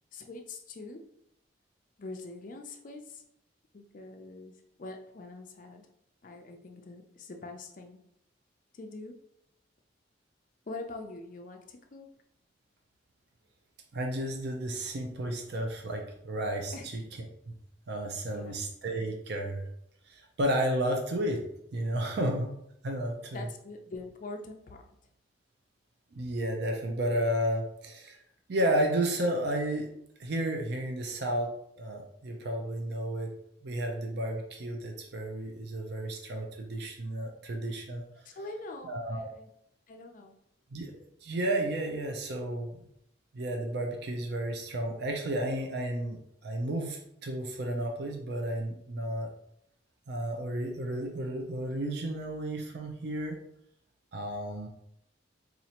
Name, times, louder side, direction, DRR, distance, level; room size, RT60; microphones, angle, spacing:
voice 1, 0.1-1.0 2.0-3.2 3.7-5.8 6.2-8.0 8.7-9.1 10.7-12.1 16.7-16.9 18.3-18.6 23.3-24.8 38.2-39.5 39.9-40.3, left 2 dB, 45° left, 4 dB, 0.4 m, -44 dB
voice 2, 13.9-16.7 17.9-19.7 20.1-21.4 21.7-22.5 22.8-23.4 26.1-28.2 28.5-29.9 30.2-33.3 33.6-38.0 38.9-39.3 40.7-40.9 41.2-42.8 43.3-49.3 50.1-53.4 54.1-54.7, right 1 dB, 60° right, 2 dB, 0.5 m, -32 dB
4.2 x 2.5 x 2.8 m, 0.74 s
head